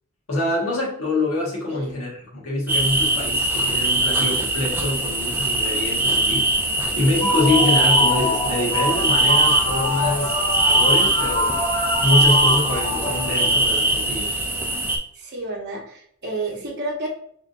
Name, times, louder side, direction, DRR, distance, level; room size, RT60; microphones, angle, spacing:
voice 1, 0.3-11.6 12.0-14.3, left 2 dB, 75° left, -3 dB, 1.3 m, -25 dB
sound 1, 2.7-15.0, right 2 dB, 10° right, 0.4 m, -21 dB
sound 2, 7.0-13.8, left 2 dB, 30° left, 1.4 m, -25 dB
voice 2, 15.2-17.1, right 2 dB, 50° right, -2 dB, 0.9 m, -30 dB
3.9 x 3.6 x 2.5 m, 0.62 s
head